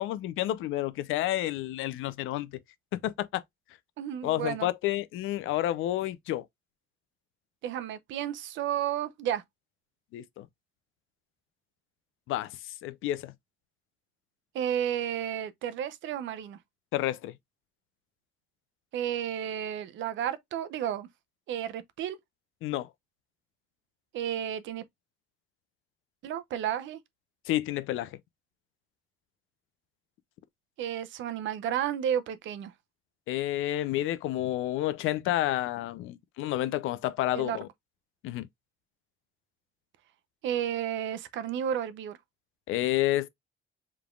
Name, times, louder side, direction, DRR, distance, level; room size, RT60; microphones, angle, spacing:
voice 1, 0.0-2.5 3.0-3.4 4.2-6.4 10.1-10.5 12.3-12.6 12.8-13.3 16.9-17.3 22.6-22.9 27.5-28.2 33.3-37.7 38.2-38.5 42.7-43.3, left 14 dB, 85° left, 0.5 m, -30 dB
voice 2, 4.0-4.7 7.6-9.4 14.5-16.6 18.9-21.1 21.5-22.2 24.1-24.8 26.2-27.0 30.8-32.7 37.3-37.6 40.4-42.2, right 10 dB, 70° right, 0.6 m, -32 dB
5.0 x 3.4 x 2.3 m
cardioid pair, 140°, 20 cm